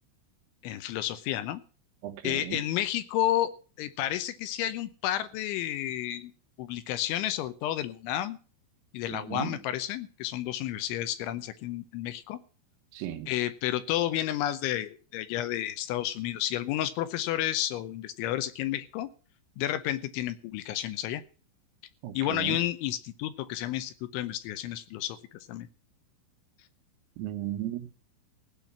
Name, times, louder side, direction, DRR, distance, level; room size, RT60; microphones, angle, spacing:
voice 1, 0.6-1.6 2.2-6.3 6.6-8.4 8.9-12.4 13.3-19.1 19.6-21.2 22.1-25.7, left 13 dB, 80° left, 3.0 m, -31 dB
voice 2, 2.0-2.6 9.1-9.6 12.9-13.3 22.0-22.6 27.2-27.9, right 12 dB, 85° right, 3.8 m, -36 dB
16.5 x 5.7 x 8.6 m
omnidirectional pair, 5.8 m